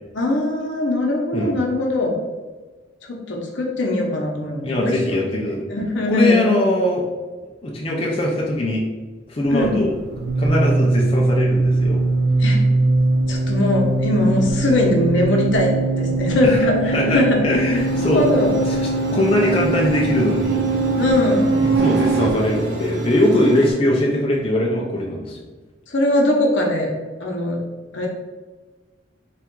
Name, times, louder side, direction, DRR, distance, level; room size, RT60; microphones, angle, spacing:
voice 1, 0.1-2.1 3.1-5.2 5.7-6.5 9.5-9.8 12.4-12.6 13.3-17.4 17.8-18.5 21.0-21.5 21.9-22.4 25.9-26.9 27.2-27.6 27.9-28.1, left 1 dB, 70° left, 0 dB, 0.8 m, -21 dB
voice 2, 4.6-5.7 6.1-7.1 7.6-8.8 9.3-9.9 10.4-12.0 16.4-16.6 16.9-18.3 18.7-20.6 21.6-25.4, left 1 dB, 30° left, -3 dB, 0.5 m, -21 dB
sound 1, 9.5-22.3, right 3 dB, 55° right, 0.4 m, -21 dB
sound 2, 17.7-23.7, right 1 dB, 85° right, 1.1 m, -28 dB
3.4 x 2.4 x 4.4 m, 1.3 s
head